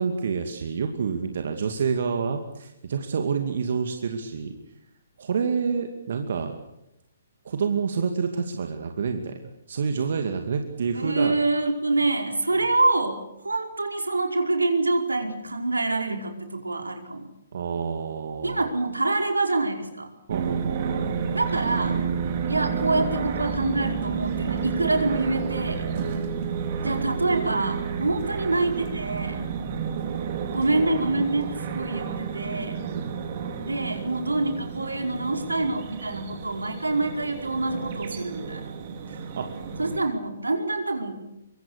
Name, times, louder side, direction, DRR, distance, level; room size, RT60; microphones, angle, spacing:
voice 1, 0.0-4.6 5.2-6.5 7.4-9.4 9.7-11.3 12.5-12.7 17.5-18.6 20.3-21.0 26.0-26.2 32.9-33.1 39.1-39.6, right 6 dB, 55° right, 5 dB, 2.5 m, -28 dB
voice 2, 10.9-17.3 18.4-20.1 21.3-22.0 22.5-25.9 26.8-29.4 30.5-32.8 33.6-38.6 39.8-41.2, right 2 dB, 85° right, 4 dB, 4.8 m, -26 dB
sound 1, 20.3-40.0, right 6 dB, 40° right, 4.7 m, -31 dB
25.0 x 24.0 x 6.7 m, 0.85 s
figure-of-eight pair, 130°, 0 cm